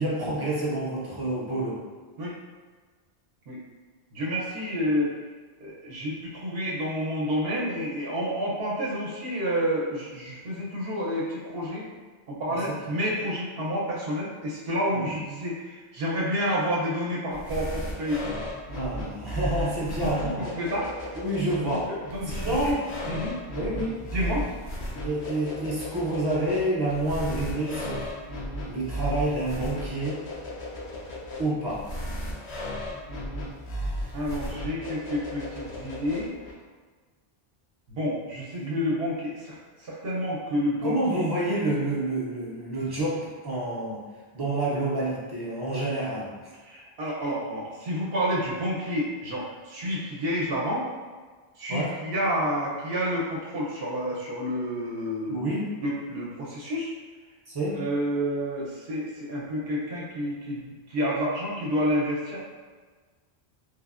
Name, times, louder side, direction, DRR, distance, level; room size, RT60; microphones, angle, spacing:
voice 1, 0.0-1.8 12.5-12.7 14.9-15.1 18.7-20.5 21.2-21.9 22.3-22.8 23.5-24.0 25.0-28.1 28.7-30.2 31.4-31.8 38.6-38.8 40.8-44.0 44.3-46.3 51.7-51.9 55.3-55.7 57.5-57.8, right 1 dB, 30° right, -6 dB, 0.4 m, -28 dB
voice 2, 4.1-5.1 5.6-11.8 12.3-18.5 20.0-20.9 21.6-22.8 23.1-23.4 24.1-24.4 34.1-36.3 37.9-41.2 46.6-50.8 51.6-55.5 55.8-56.9 57.7-62.4, equal, 70° right, -5 dB, 0.8 m, -29 dB
sound 1, 17.3-36.5, equal, 85° left, 0.9 m, -35 dB
3.3 x 2.0 x 2.4 m, 1.4 s
omnidirectional pair, 1.1 m